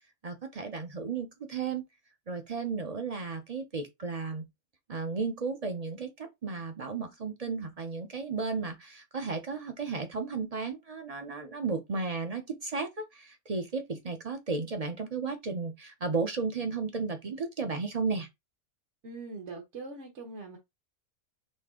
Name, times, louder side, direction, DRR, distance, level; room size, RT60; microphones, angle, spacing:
voice 1, 0.2-1.8 2.3-4.4 4.9-18.3, right 4 dB, 40° right, 0.6 m, -34 dB
voice 2, 19.0-20.6, right 3 dB, 55° right, 1.4 m, -42 dB
4.3 x 3.2 x 3.6 m
omnidirectional pair, 1.4 m